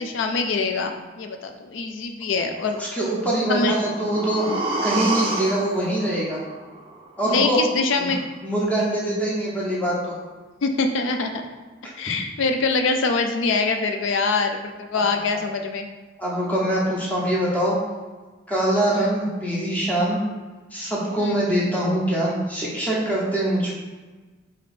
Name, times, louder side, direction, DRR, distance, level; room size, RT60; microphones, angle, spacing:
voice 1, 0.0-2.8 3.5-3.8 7.2-8.2 10.6-11.4 12.0-15.9 18.9-19.1 21.2-21.4, left 4 dB, 85° left, 5 dB, 0.4 m, -24 dB
voice 2, 2.7-4.5 4.8-6.4 7.2-7.6 8.0-8.1 8.4-10.1 16.2-17.8 18.5-20.3 20.7-23.8, right 1 dB, 10° left, -6 dB, 1.0 m, -23 dB
sound 1, 3.5-7.5 7.8-7.9, right 2 dB, 30° right, 0.5 m, -29 dB
3.9 x 3.2 x 4.2 m, 1.3 s
head